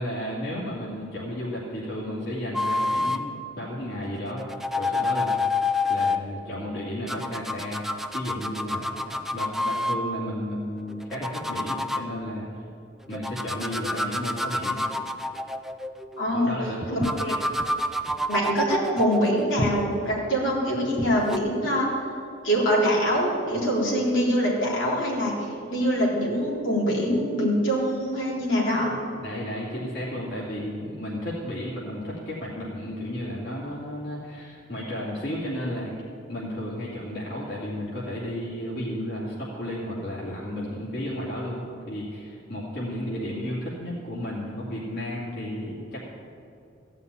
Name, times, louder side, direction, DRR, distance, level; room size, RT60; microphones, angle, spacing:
voice 1, 0.0-4.4 4.8-5.4 5.9-7.8 8.1-12.6 13.1-14.8 16.3-17.1 29.2-35.9 36.3-46.1, equal, 55° left, -7 dB, 2.6 m, -33 dB
sound 1, 2.5-3.2 4.3-6.2 7.1-10.0 10.9-12.0 13.1-16.3 17.0-20.3 21.2-21.4, left 2 dB, ahead, 0.4 m, -28 dB
voice 2, 16.2-16.5 16.9-17.3 18.3-21.9 22.4-28.9, equal, 80° left, -5 dB, 3.6 m, -24 dB
Walk footsteps, 16.8-21.3, right 1 dB, 35° right, 0.7 m, -35 dB
15.0 x 5.7 x 9.5 m, 2.6 s
head